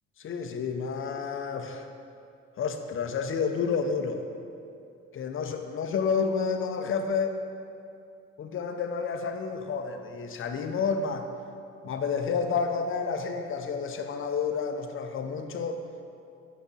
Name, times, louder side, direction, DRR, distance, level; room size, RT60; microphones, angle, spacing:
voice 1, 0.2-1.9 2.6-4.3 5.1-7.4 8.4-11.3 11.8-15.8, left 5 dB, 45° left, 6 dB, 0.6 m, -30 dB
6.0 x 4.8 x 4.1 m, 2.5 s
cardioid pair, 90°, 30 cm